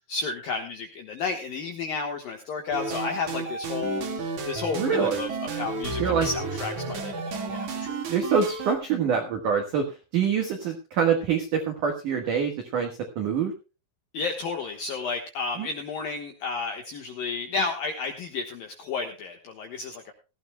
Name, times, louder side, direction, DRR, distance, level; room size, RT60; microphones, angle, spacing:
voice 1, 0.1-8.0 14.1-20.1, left 4 dB, 75° left, 3 dB, 2.1 m, -32 dB
sound 1, 2.7-8.8, right 4 dB, 55° right, 2.3 m, -32 dB
voice 2, 4.7-5.2 6.0-6.3 8.1-12.9 13.2-13.5 15.6-15.7, right 6 dB, 75° right, 4 dB, 1.8 m, -25 dB
18.0 x 15.0 x 2.2 m, 0.31 s
omnidirectional pair, 5.9 m